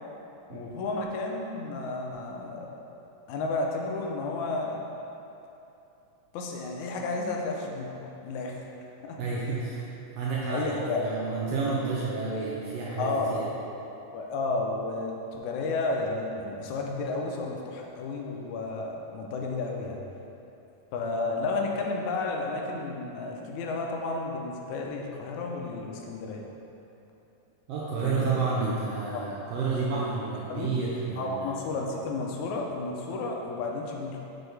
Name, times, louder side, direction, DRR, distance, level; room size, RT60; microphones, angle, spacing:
voice 1, 0.5-2.8 3.3-4.8 6.3-8.7 9.0-9.2 10.5-11.2 13.0-13.3 14.1-20.0 20.9-26.4 28.0-28.3 29.1-29.2 29.9-30.1 30.5-30.7 31.2-34.3, left 3 dB, 80° left, 0 dB, 2.0 m, -32 dB
voice 2, 9.2-9.9 10.1-13.5 27.7-31.5, right 4 dB, 75° right, -6 dB, 1.5 m, -30 dB
6.2 x 4.6 x 3.3 m, 2.9 s
omnidirectional pair, 3.3 m